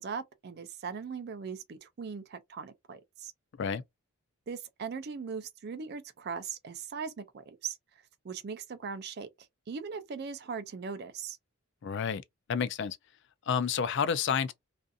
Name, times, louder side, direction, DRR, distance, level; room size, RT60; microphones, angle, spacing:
voice 1, 0.0-3.3 4.5-7.8 8.2-9.3 9.7-11.4, right 5 dB, 45° right, 0.4 m, -39 dB
voice 2, 11.8-12.2 12.5-13.0 13.5-14.5, left 7 dB, 50° left, 0.3 m, -29 dB
2.5 x 2.4 x 2.5 m
head